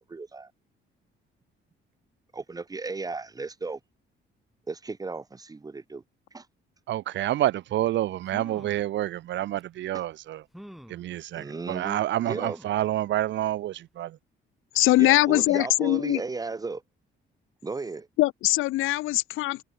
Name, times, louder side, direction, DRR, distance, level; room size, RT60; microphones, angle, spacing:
voice 1, 0.1-0.5 2.3-3.8 4.7-6.0 6.3-6.5 11.3-12.0 12.3-12.6 14.7-16.8 17.6-18.1, right 3 dB, 15° right, 1.6 m, -35 dB
voice 2, 6.9-10.4 10.9-14.2, right 13 dB, 65° right, 0.8 m, -28 dB
sound 1, 8.3-8.9 9.6-9.7 10.5-11.1 12.3-12.8 13.3-13.4 13.7-13.8, equal, ahead, 1.9 m, -46 dB
voice 3, 14.7-16.2 18.2-19.6, left 17 dB, 80° left, 0.4 m, -22 dB
cardioid pair, 165°, 21 cm